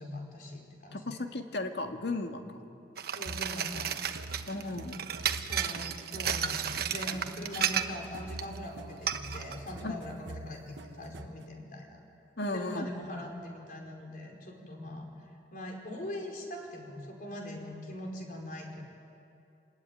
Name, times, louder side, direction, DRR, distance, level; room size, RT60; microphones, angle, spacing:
voice 1, 0.0-1.2 3.1-3.9 4.5-4.7 5.5-12.0 12.5-15.1 15.5-18.8, left 1 dB, 50° left, 1 dB, 4.8 m, -42 dB
voice 2, 0.9-2.6 4.5-5.0 9.8-10.0 12.4-12.9, left 2 dB, 65° left, 4 dB, 1.9 m, -35 dB
sound 1, 3.0-8.1 8.4-8.6 9.1-9.6, right 8 dB, 60° right, 1.1 m, -33 dB
sound 2, 3.3-11.4, right 1 dB, 85° right, 1.1 m, -45 dB
26.5 x 20.5 x 9.1 m, 2.6 s
head